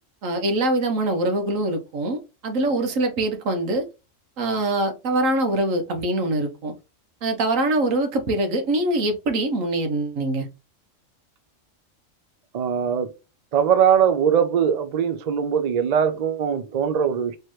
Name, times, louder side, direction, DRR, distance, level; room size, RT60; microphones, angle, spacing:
voice 1, 0.2-3.9 4.4-6.7 7.2-10.5, right 2 dB, 80° right, 1.4 m, -23 dB
voice 2, 12.5-13.1 13.5-17.4, right 8 dB, 50° right, 0.5 m, -21 dB
4.5 x 3.1 x 3.1 m
omnidirectional pair, 1.3 m